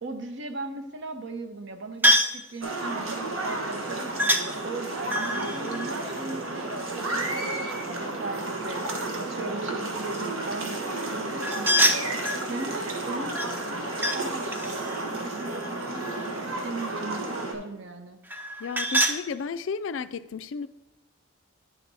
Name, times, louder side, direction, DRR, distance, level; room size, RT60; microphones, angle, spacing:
voice 1, 0.0-18.2, right 3 dB, 60° right, 0.8 m, -38 dB
sound 1, 2.0-2.4 4.2-4.5 5.1-6.9 11.4-12.5 13.4-14.2 14.5-16.4 18.3-19.2, equal, 10° right, 0.4 m, -26 dB
sound 2, 2.6-17.5, right 2 dB, 90° right, 1.3 m, -32 dB
voice 2, 18.6-20.7, left 5 dB, 65° left, 0.4 m, -33 dB
9.9 x 4.1 x 4.7 m
head